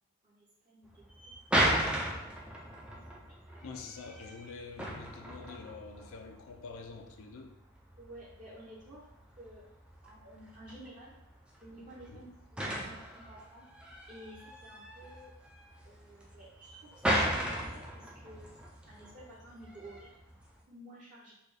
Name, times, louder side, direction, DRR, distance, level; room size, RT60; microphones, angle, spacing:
voice 1, 0.2-2.0 2.4-3.6 8.0-9.0 9.4-9.6 10.0-11.2 11.6-12.3 12.8-13.7 14.1-15.3 15.8-18.5 18.9-20.4 20.7-21.3, right 1 dB, 35° right, -7 dB, 0.7 m, -53 dB
sound 1, 0.9-20.6, right 1 dB, 5° right, 0.3 m, -37 dB
voice 2, 3.6-7.5 12.1-12.3, left 4 dB, 70° left, 5 dB, 0.4 m, -46 dB
4.0 x 2.3 x 3.3 m, 0.86 s
head